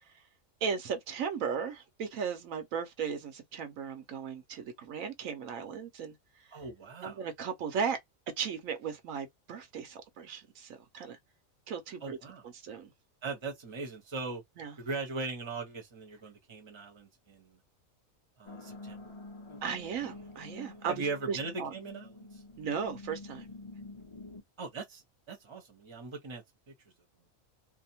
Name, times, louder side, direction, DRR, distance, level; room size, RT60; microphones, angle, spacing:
voice 1, 0.6-6.1 7.0-8.0 8.4-11.2 11.7-12.2 12.4-12.9 14.6-14.7 19.6-21.7 22.6-23.5, right 6 dB, 75° right, 1.1 m, -36 dB
voice 2, 6.5-7.2 12.0-12.4 13.2-14.4 14.8-17.6 18.4-19.1 20.9-22.4 24.6-25.0 25.3-26.7, right 4 dB, 25° right, 0.8 m, -39 dB
sound 1, 18.5-24.4, left 2 dB, 40° left, 0.4 m, -48 dB
2.7 x 2.1 x 2.8 m
omnidirectional pair, 1.4 m